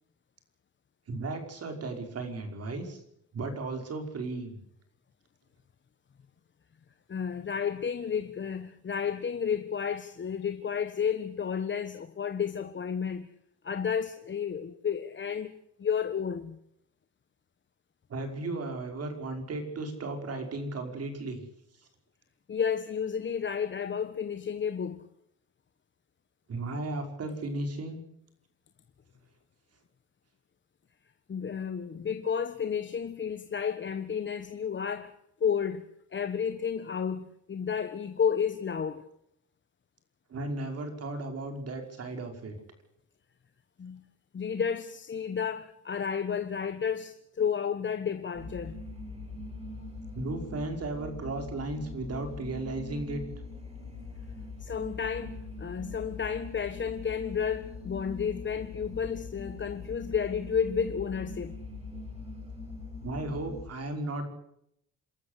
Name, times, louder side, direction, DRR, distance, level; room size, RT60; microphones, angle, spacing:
voice 1, 1.1-3.0 3.3-4.6 18.1-21.4 26.5-28.0 40.3-42.6 50.2-53.2 63.0-64.3, right 2 dB, 55° right, 5.4 m, -35 dB
voice 2, 7.1-13.3 13.6-15.5 15.8-16.6 22.5-25.0 31.3-35.1 35.4-35.9 36.1-39.0 43.8-44.0 44.3-48.8 54.6-61.5, left 7 dB, 40° left, 1.3 m, -31 dB
sound 1, 48.3-63.7, left 3 dB, 20° right, 7.4 m, -42 dB
27.5 x 13.5 x 8.4 m
cardioid pair, 90°, 30 cm